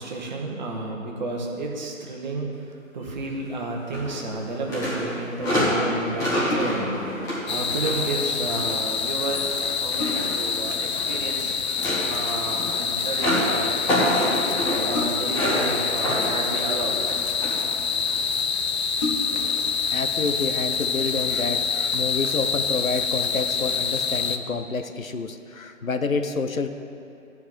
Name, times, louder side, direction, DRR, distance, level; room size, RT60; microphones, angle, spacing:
voice 1, 0.0-2.5 2.9-11.6 12.0-14.3 14.8-17.2, right 2 dB, 35° right, 0 dB, 1.3 m, -31 dB
sound 1, 3.9-4.4 4.7-8.8 9.2-11.3 11.6-17.8 18.1-18.3 19.3-19.5 20.1-20.2, left 1 dB, 10° left, 1.4 m, -28 dB
sound 2, 6.5-7.0 9.1-9.2 9.6-10.5 12.1-12.5 14.9-15.5 16.5-17.2 17.9-18.0 18.4-18.5 18.9-19.6 20.1-20.2, left 2 dB, 30° left, 1.5 m, -32 dB
sound 3, 7.5-24.4, left 6 dB, 50° left, 0.6 m, -26 dB
voice 2, 19.9-26.7, left 4 dB, 80° left, 7 dB, 0.8 m, -29 dB
13.5 x 4.7 x 7.4 m, 2.7 s
figure-of-eight pair, 140°, 40 cm